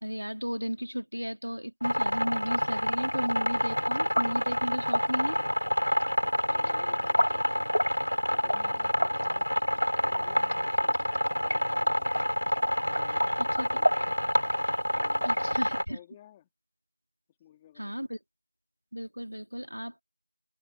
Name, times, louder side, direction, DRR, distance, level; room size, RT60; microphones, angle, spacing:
voice 1, 0.0-5.4 13.4-13.8 15.2-16.0 17.8-18.2 18.9-20.0, equal, 75° right, 2.6 m, -34 dB
sound 1, 1.8-15.8, equal, 70° left, 3.1 m, -27 dB
voice 2, 6.5-7.8 8.2-9.6 10.1-12.3 12.9-13.4 13.8-14.2 15.0-15.6 15.9-16.5 17.4-18.1, left 12 dB, ahead, 3.1 m, -55 dB
open air
figure-of-eight pair, 180°, 0 cm